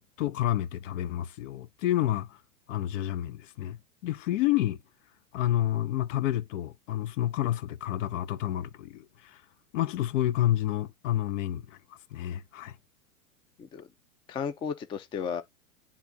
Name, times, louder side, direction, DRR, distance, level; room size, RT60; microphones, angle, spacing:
voice 1, 0.0-2.4 2.7-4.8 5.3-9.4 9.7-12.8, left 13 dB, 60° left, 0.6 m, -29 dB
voice 2, 14.3-15.4, left 7 dB, 15° left, 0.4 m, -34 dB
10.0 x 3.6 x 2.6 m
hypercardioid pair, 110°, 43 cm